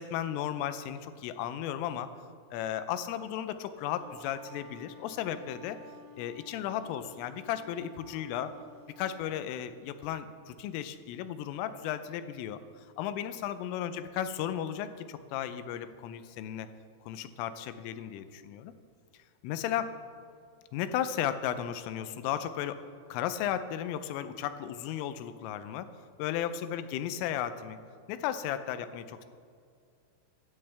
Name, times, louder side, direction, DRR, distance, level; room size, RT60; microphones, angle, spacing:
voice 1, 0.0-2.1 2.5-5.8 6.2-8.5 9.0-16.7 17.1-18.7 19.4-20.0 20.7-22.8 23.1-25.9 26.2-27.8 28.1-29.3, left 10 dB, 90° left, 11 dB, 3.3 m, -35 dB
Wind instrument woodwind instrument, 3.8-9.2, left 1 dB, 75° right, 2.2 m, -53 dB
16.5 x 13.5 x 3.4 m, 2.3 s
omnidirectional pair, 5.7 m